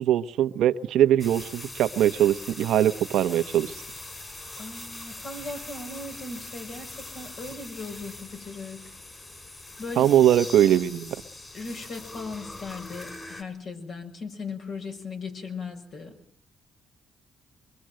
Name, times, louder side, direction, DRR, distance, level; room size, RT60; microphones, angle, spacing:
voice 1, 0.0-3.7 10.0-11.1, right 11 dB, 80° right, 10 dB, 1.0 m, -21 dB
sound 1, 1.2-13.4, left 2 dB, 25° left, 5.4 m, -42 dB
voice 2, 4.6-8.8 9.8-10.1 10.6-10.7 11.5-16.2, left 3 dB, 60° left, 3 dB, 6.4 m, -38 dB
24.5 x 22.5 x 7.7 m, 0.64 s
cardioid pair, 90°, 0 cm